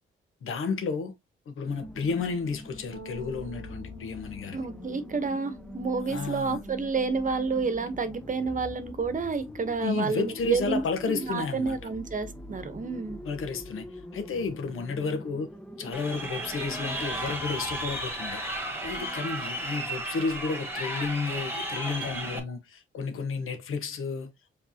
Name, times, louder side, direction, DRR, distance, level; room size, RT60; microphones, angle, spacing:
voice 1, 0.4-1.1 1.5-4.7 6.0-6.6 9.8-11.8 13.2-13.8 14.1-15.5 15.8-18.4 18.8-24.3, left 4 dB, 75° left, 1.2 m, -32 dB
sound 1, 1.7-19.9, left 1 dB, 5° left, 0.6 m, -44 dB
sound 2, 2.9-12.6, left 2 dB, 90° right, 0.8 m, -51 dB
voice 2, 4.5-13.2, right 4 dB, 40° right, 1.0 m, -30 dB
Crowd, 15.9-22.4, right 1 dB, 10° right, 1.8 m, -34 dB
5.3 x 3.3 x 2.8 m
cardioid pair, 85°, 21 cm